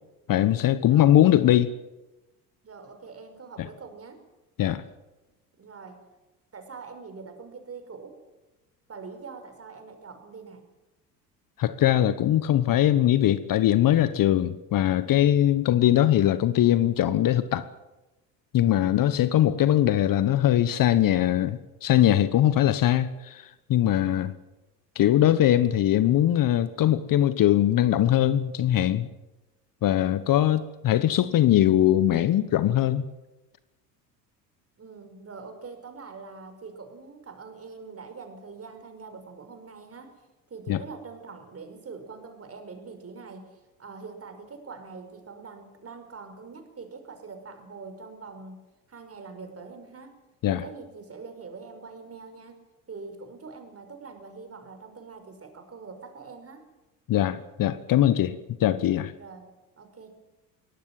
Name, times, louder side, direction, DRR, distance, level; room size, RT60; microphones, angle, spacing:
voice 1, 0.3-1.7 4.6-4.8 11.6-17.7 18.5-24.3 24.9-29.1 29.8-33.0 40.7-40.8 50.4-50.6 57.1-59.1, left 12 dB, 45° left, 1.2 m, -21 dB
voice 2, 0.8-1.5 2.6-4.2 5.6-6.1 6.5-8.2 8.9-10.7 18.6-19.2 34.8-40.2 40.5-48.6 48.9-50.2 50.5-52.6 52.9-56.7 59.2-59.5 59.8-60.1, right 4 dB, 30° right, 5.6 m, -44 dB
23.0 x 18.5 x 7.5 m
hypercardioid pair, 65°, 47 cm